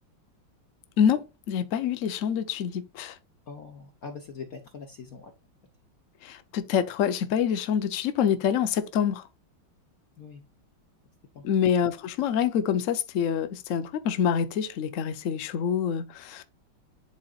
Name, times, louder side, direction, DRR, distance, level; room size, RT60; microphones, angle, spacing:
voice 1, 1.0-3.2 6.2-9.3 11.4-16.4, left 8 dB, 80° left, 0.7 m, -26 dB
voice 2, 3.5-5.3 10.2-10.4 11.3-11.4, left 5 dB, 55° left, 1.2 m, -42 dB
10.5 x 4.3 x 2.4 m
omnidirectional pair, 2.3 m